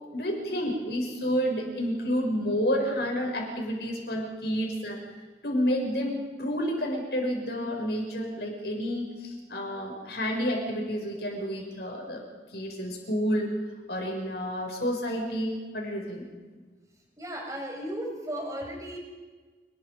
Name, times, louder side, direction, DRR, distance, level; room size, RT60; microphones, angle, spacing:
voice 1, 0.1-5.0 5.4-12.2 12.5-13.5 13.9-16.3, equal, 65° left, 1 dB, 7.1 m, -30 dB
voice 2, 17.2-19.0, right 1 dB, 20° right, 0 dB, 5.8 m, -35 dB
29.0 x 21.0 x 5.4 m, 1.4 s
head